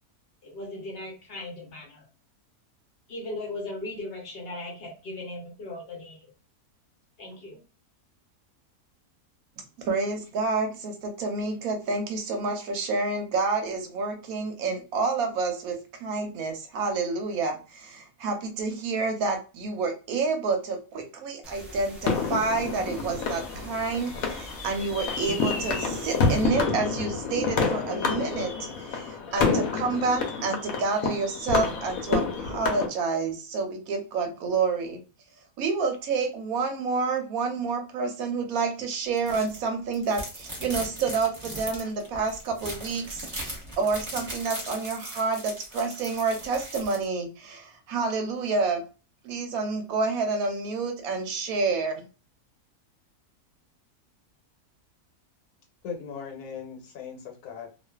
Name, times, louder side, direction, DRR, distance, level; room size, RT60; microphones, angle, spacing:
voice 1, 0.4-2.1 3.1-6.3 7.2-7.6, left 2 dB, 50° left, 0 dB, 0.8 m, -38 dB
voice 2, 9.8-28.5 28.8-35.0 35.6-48.8 49.2-52.0, right 4 dB, 75° right, 4 dB, 1.0 m, -29 dB
sound 1, 21.4-26.4, equal, ahead, 0.4 m, -44 dB
sound 2, 22.0-32.9, left 4 dB, 70° left, 1.0 m, -28 dB
sound 3, 39.2-39.6 39.9-47.0, right 1 dB, 25° right, 1.0 m, -38 dB
voice 3, 55.8-57.9, left 6 dB, 85° left, 2 dB, 1.3 m, -39 dB
2.4 x 2.4 x 2.2 m, 0.33 s
omnidirectional pair, 1.6 m